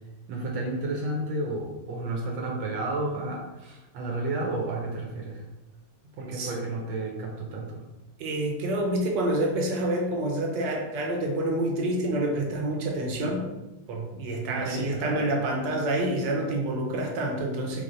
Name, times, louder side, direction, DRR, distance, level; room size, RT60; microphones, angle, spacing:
voice 1, 0.3-5.4 6.2-7.8 14.5-15.3, right 2 dB, 85° right, -1 dB, 1.5 m, -32 dB
voice 2, 8.2-13.5 13.9-17.8, right 1 dB, 70° right, 1 dB, 1.3 m, -28 dB
3.4 x 3.2 x 3.8 m, 1.0 s
omnidirectional pair, 2.1 m